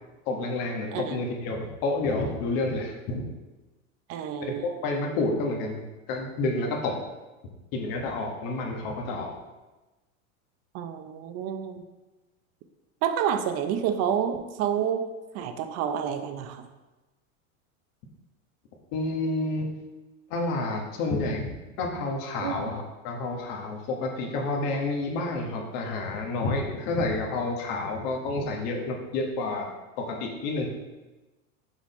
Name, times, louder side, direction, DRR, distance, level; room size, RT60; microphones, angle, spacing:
voice 1, 0.3-3.3 4.6-5.8 6.1-6.9 7.7-9.3 18.9-19.7 20.3-21.5 21.8-29.7 30.0-30.7, left 2 dB, 50° left, 1 dB, 1.3 m, -29 dB
voice 2, 4.1-4.6 10.7-11.8 13.0-16.7 22.4-22.6, right 8 dB, 35° right, 8 dB, 0.6 m, -29 dB
6.2 x 4.0 x 4.2 m, 1.1 s
supercardioid pair, 120°, 42 cm